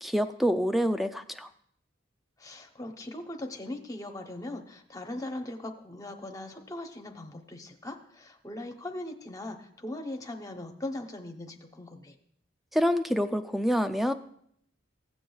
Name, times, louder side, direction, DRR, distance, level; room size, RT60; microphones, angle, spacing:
voice 1, 0.0-1.5 12.7-14.1, equal, ahead, 9 dB, 0.3 m, -26 dB
voice 2, 2.4-12.2, left 1 dB, 15° left, 4 dB, 0.8 m, -40 dB
16.0 x 7.9 x 2.3 m, 0.68 s
head